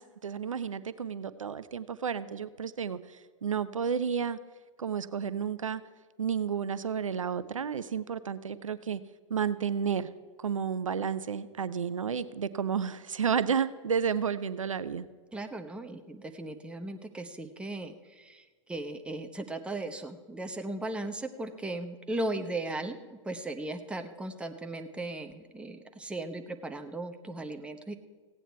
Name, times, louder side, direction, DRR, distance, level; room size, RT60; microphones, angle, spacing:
voice 1, 0.0-4.4 4.8-5.8 6.2-9.0 9.3-10.1 10.4-15.1, right 7 dB, 85° right, 15 dB, 0.6 m, -31 dB
voice 2, 15.3-27.9, right 2 dB, 5° right, 6 dB, 0.9 m, -37 dB
16.0 x 9.1 x 4.5 m, 1.5 s
figure-of-eight pair, 105°, 16 cm